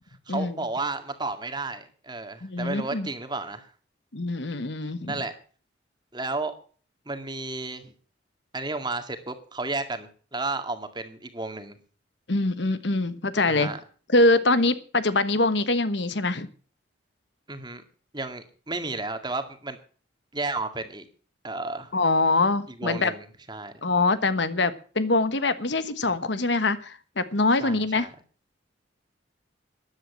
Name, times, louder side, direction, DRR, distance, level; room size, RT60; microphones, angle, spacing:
voice 1, 0.3-3.7 5.1-5.4 6.1-6.6 7.1-7.9 8.5-11.8 13.4-13.8 17.5-17.8 18.1-19.8 20.3-21.0 21.4-21.9 22.7-23.7 27.6-28.1, right 3 dB, 25° right, 2.0 m, -32 dB
voice 2, 2.4-3.1 4.1-5.2 12.3-13.7 14.1-16.5 21.9-23.1 23.8-28.1, left 2 dB, 65° left, 1.3 m, -24 dB
14.0 x 10.5 x 7.3 m
head